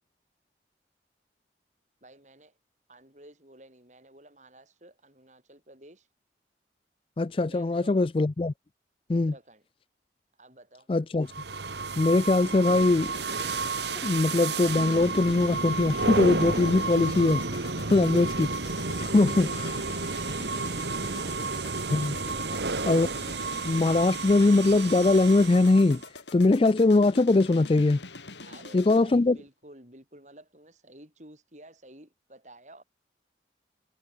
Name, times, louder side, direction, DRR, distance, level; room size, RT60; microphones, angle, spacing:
voice 1, 2.0-2.6 2.9-6.1 7.5-8.1 9.1-9.6 10.4-10.9 19.0-21.5 22.2-22.8 28.4-32.8, right 1 dB, 40° right, 7.7 m, -52 dB
voice 2, 7.2-8.5 9.1-9.3 10.9-11.3 12.0-13.1 14.0-18.5 19.0-19.7 21.9-22.2 22.8-23.1 23.6-26.0 26.3-28.0 28.7-29.4, left 2 dB, 30° left, 0.4 m, -22 dB
sound 1, 11.3-26.1, right 3 dB, 80° right, 2.2 m, -31 dB
sound 2, 13.0-29.2, left 3 dB, 90° left, 4.4 m, -45 dB
head